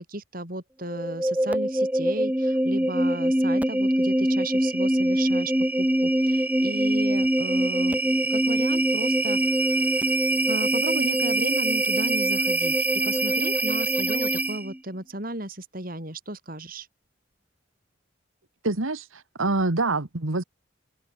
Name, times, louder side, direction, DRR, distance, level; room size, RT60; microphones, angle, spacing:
voice 1, 0.1-5.5 5.8-8.0 8.3-10.2 10.4-16.9, right 1 dB, 45° right, 6.4 m, -35 dB
sound 1, 0.9-14.8, right 1 dB, 10° right, 1.2 m, -23 dB
voice 2, 18.6-20.4, right 2 dB, 90° right, 1.8 m, -26 dB
head